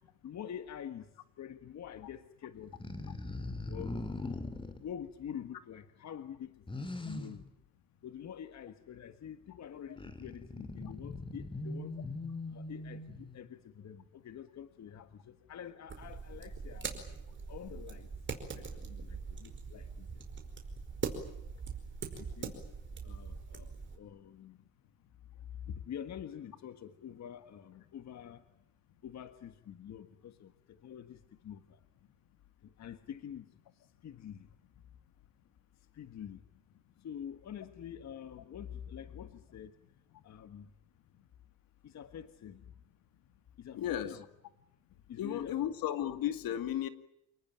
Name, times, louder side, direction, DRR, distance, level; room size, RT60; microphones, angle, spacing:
voice 1, 0.2-1.1 1.4-2.7 3.7-4.0 4.8-6.6 7.0-7.5 8.0-12.0 12.5-16.9 17.5-18.1 18.5-20.2 22.2-22.5 23.0-24.6 25.7-28.4 29.0-31.8 32.6-33.5 34.0-34.5 35.9-36.4 37.0-39.7 40.2-40.7 41.8-42.6 43.6-44.3 45.1-45.6, left 9 dB, 50° left, 10 dB, 1.6 m, -46 dB
sound 1, 2.6-4.8 6.7-7.4 10.0-13.4, left 2 dB, 15° left, 2.6 m, -41 dB
sound 2, 15.9-24.0, right 5 dB, 30° right, 5.0 m, -42 dB
voice 2, 43.7-44.2 45.2-46.9, left 11 dB, 70° left, 10 dB, 2.3 m, -34 dB
29.0 x 19.0 x 9.0 m, 0.82 s
cardioid pair, 130°, 36 cm